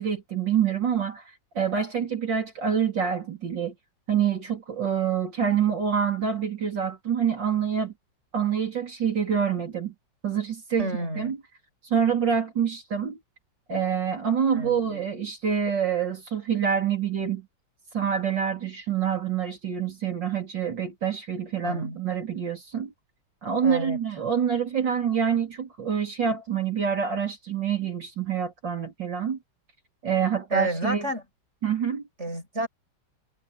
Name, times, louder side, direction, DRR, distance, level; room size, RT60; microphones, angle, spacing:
voice 1, 0.0-3.7 4.1-7.9 8.3-9.9 10.2-10.9 11.2-11.4 11.8-13.2 13.7-17.5 17.9-22.9 23.4-29.4 30.0-31.1 31.6-32.0, right 7 dB, 80° right, 4.7 m, -26 dB
voice 2, 10.8-11.3 14.5-15.1 21.6-22.0 23.6-24.0 30.5-31.2 32.2-32.7, right 1 dB, 35° right, 7.9 m, -30 dB
omnidirectional pair, 1.9 m